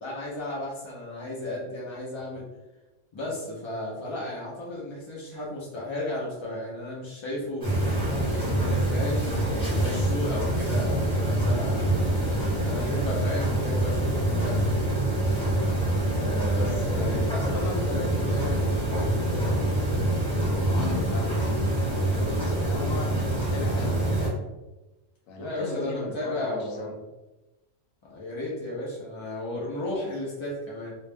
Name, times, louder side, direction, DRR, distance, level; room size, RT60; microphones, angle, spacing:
voice 1, 0.0-2.4 3.1-7.7 8.3-14.7 16.1-17.4 25.4-27.0 28.1-31.0, left 1 dB, 50° left, -6 dB, 0.3 m, -34 dB
sound 1, 7.6-24.3, right 1 dB, 5° left, 1.0 m, -25 dB
voice 2, 16.6-24.4 25.3-26.9, left 2 dB, 90° left, 1 dB, 1.0 m, -37 dB
2.4 x 2.1 x 3.3 m, 1.0 s
omnidirectional pair, 1.3 m